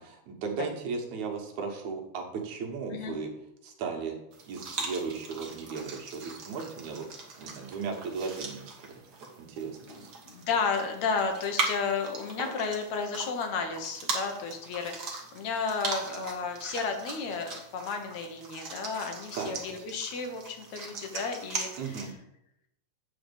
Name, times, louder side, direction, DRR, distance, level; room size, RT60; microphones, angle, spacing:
voice 1, 0.3-3.3 3.6-4.2 4.5-7.1 7.4-9.0 9.4-10.1 19.3-19.5 21.8-22.1, right 5 dB, 75° right, 2 dB, 2.7 m, -36 dB
sound 1, 4.3-22.1, right 3 dB, 45° right, 1.5 m, -39 dB
voice 2, 9.9-21.9, left 5 dB, 70° left, 4 dB, 2.3 m, -33 dB
8.9 x 4.4 x 6.9 m, 0.80 s
omnidirectional pair, 3.4 m